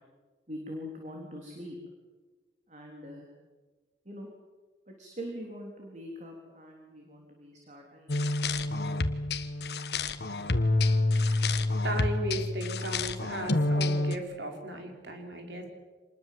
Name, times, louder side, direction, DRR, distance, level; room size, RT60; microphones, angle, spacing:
voice 1, 0.5-1.8 2.7-3.3 4.1-4.3 4.9-8.2, equal, 40° right, 0 dB, 3.8 m, -43 dB
sound 1, 8.1-14.2, left 2 dB, 65° left, 1.4 m, -28 dB
voice 2, 11.8-15.7, right 1 dB, 85° right, 3 dB, 5.1 m, -36 dB
26.5 x 20.5 x 7.8 m, 1.3 s
head